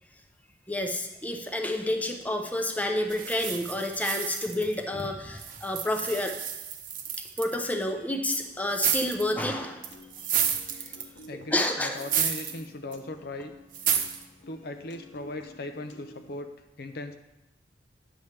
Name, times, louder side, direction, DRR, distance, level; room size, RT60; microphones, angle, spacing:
voice 1, 0.7-6.4 7.4-9.9 10.7-10.9 11.5-12.0, left 1 dB, 10° left, 4 dB, 0.6 m, -29 dB
sound 1, 3.1-5.0 5.4-7.6 8.7-9.3 9.8-11.3 12.0-12.6 12.9-13.0 13.7-14.2, right 8 dB, 50° right, 0.8 m, -30 dB
Piano, 8.4-16.4, left 1 dB, 90° left, 0.9 m, -51 dB
voice 2, 11.3-13.5 14.5-16.5 16.8-17.2, left 2 dB, 60° left, 7 dB, 0.6 m, -38 dB
9.7 x 7.0 x 3.3 m, 0.91 s
head